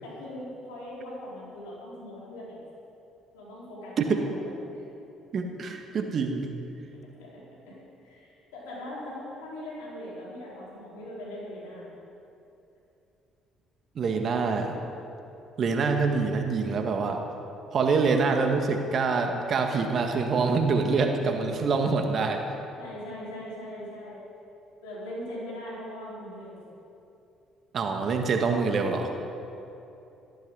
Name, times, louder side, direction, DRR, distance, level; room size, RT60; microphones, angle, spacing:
voice 1, 0.0-2.6 3.3-4.8 7.2-7.3 7.7-7.8 8.0-11.9 22.8-24.2 24.8-26.6, left 1 dB, 80° left, -6 dB, 4.5 m, -40 dB
voice 2, 5.3-6.5 14.0-14.8 15.6-17.2 17.7-22.4 27.7-29.1, right 4 dB, 50° right, 4 dB, 1.8 m, -25 dB
14.5 x 14.0 x 5.5 m, 2.8 s
hypercardioid pair, 50°, 0 cm